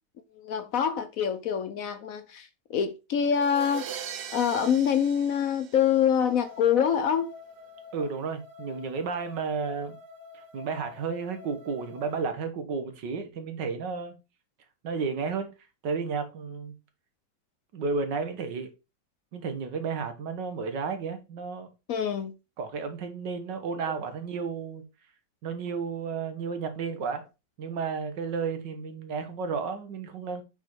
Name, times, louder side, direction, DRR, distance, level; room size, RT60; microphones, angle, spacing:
voice 1, 0.4-3.9 4.3-7.3 21.9-22.3, left 8 dB, 65° left, 1.0 m, -25 dB
sound 1, 3.4-6.3, right 9 dB, 70° right, 1.3 m, -40 dB
sound 2, 6.2-12.2, left 5 dB, 50° right, 2.0 m, -48 dB
voice 2, 7.9-10.0 10.5-14.1 14.8-15.5 15.8-16.7 17.7-18.7 19.3-21.7 22.6-24.8 25.4-27.2 27.6-30.4, right 5 dB, 85° right, 1.9 m, -32 dB
5.6 x 4.9 x 4.5 m
omnidirectional pair, 1.9 m